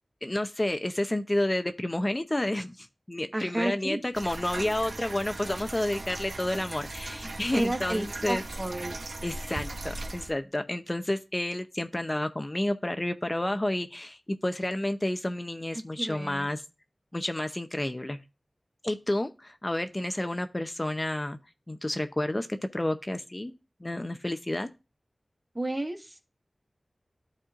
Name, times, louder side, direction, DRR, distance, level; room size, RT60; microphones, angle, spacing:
voice 1, 0.2-8.4 9.2-16.6 17.1-18.2 18.8-21.4 21.7-23.5 23.8-24.7, left 1 dB, 25° left, 0.6 m, -30 dB
voice 2, 3.3-4.0 7.5-9.0 15.7-16.5 25.5-26.3, right 1 dB, 30° right, 1.4 m, -32 dB
sound 1, 4.1-10.3, right 2 dB, 80° right, 0.9 m, -38 dB
13.0 x 4.3 x 2.4 m
wide cardioid pair, 70°, 0 cm